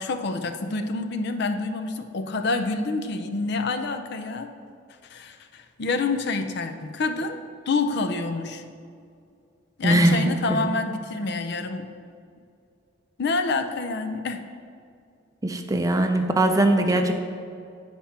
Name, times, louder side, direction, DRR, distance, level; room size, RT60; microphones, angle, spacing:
voice 1, 0.0-4.5 5.0-7.4 7.7-8.6 9.8-11.9 13.2-14.5 16.9-17.1, left 3 dB, 60° left, 8 dB, 0.5 m, -27 dB
voice 2, 9.8-10.7 15.4-17.1, right 1 dB, 15° right, 5 dB, 0.5 m, -21 dB
8.8 x 4.4 x 5.7 m, 2.4 s
head